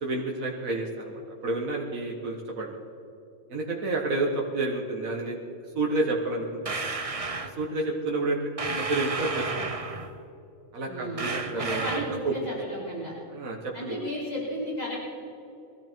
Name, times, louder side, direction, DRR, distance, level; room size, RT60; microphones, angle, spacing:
voice 1, 0.0-2.8 3.5-5.4 5.8-6.8 7.4-9.7 10.7-12.3 13.3-14.0, right 2 dB, 80° right, -1 dB, 1.9 m, -30 dB
sound 1, 6.6-7.5 8.6-10.2 11.2-12.2, right 3 dB, 30° right, 0.8 m, -32 dB
voice 2, 10.8-13.2 13.7-15.1, equal, 30° left, -8 dB, 5.0 m, -34 dB
22.5 x 14.0 x 4.6 m, 2.7 s
omnidirectional pair, 1.4 m